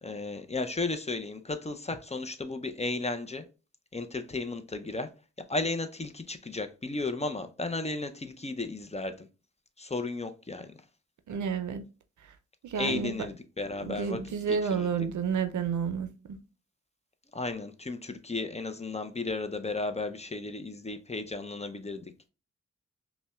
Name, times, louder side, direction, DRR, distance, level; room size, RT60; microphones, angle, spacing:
voice 1, 0.0-3.4 3.9-5.1 5.5-9.3 9.8-10.7 12.8-14.2 14.5-14.9 17.3-22.0, left 3 dB, 25° left, 0.5 m, -34 dB
voice 2, 11.3-11.8 12.6-13.1 13.8-16.4, right 6 dB, 80° right, 0.5 m, -30 dB
5.2 x 2.2 x 2.3 m
cardioid pair, 50°, 29 cm